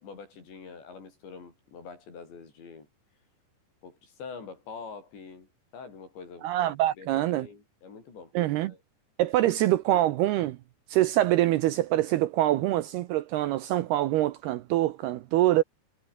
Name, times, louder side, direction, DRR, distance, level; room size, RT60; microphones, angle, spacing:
voice 1, 0.0-2.9 3.8-8.3 8.7-8.8 9.2-9.5, left 5 dB, 65° left, 9.0 m, -45 dB
voice 2, 6.4-7.5 8.3-8.7 9.2-10.6 10.9-15.6, right 15 dB, 80° right, 2.4 m, -25 dB
omnidirectional pair, 5.5 m